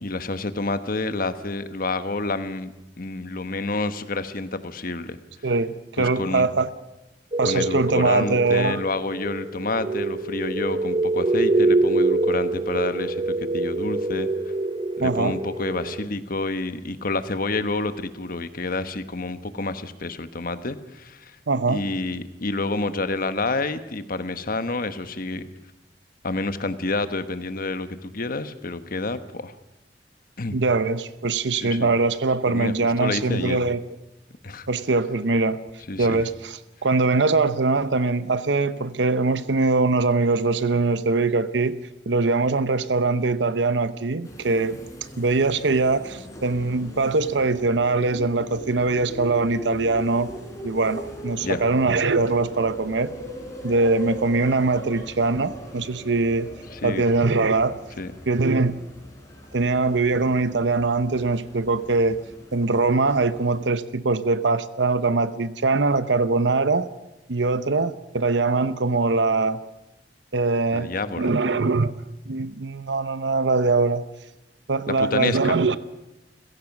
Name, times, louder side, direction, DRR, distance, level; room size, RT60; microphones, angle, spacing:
voice 1, 0.0-5.2 6.0-6.5 7.4-14.3 15.0-21.4 21.7-25.5 26.2-29.5 30.4-30.6 31.5-31.9 32.5-33.6 34.4-34.7 35.9-36.2 51.4-51.6 56.7-57.0 58.0-58.1 70.7-71.3 74.9-75.6, left 3 dB, 55° left, 11 dB, 1.3 m, -29 dB
voice 2, 5.4-6.7 7.4-8.8 15.0-15.4 21.5-21.8 30.5-33.8 34.7-35.6 36.0-41.8 42.1-44.8 45.2-50.3 50.6-53.1 53.6-56.5 56.8-57.8 58.3-58.8 59.5-62.2 62.5-66.9 67.3-69.6 70.3-70.9 71.2-71.9 72.3-74.0 74.7-75.8, right 3 dB, 80° right, 14 dB, 0.8 m, -22 dB
sound 1, 7.3-16.1, right 2 dB, 30° right, 1.0 m, -25 dB
sound 2, 44.2-63.6, equal, 20° left, 4.4 m, -40 dB
29.5 x 16.0 x 6.1 m, 0.96 s
head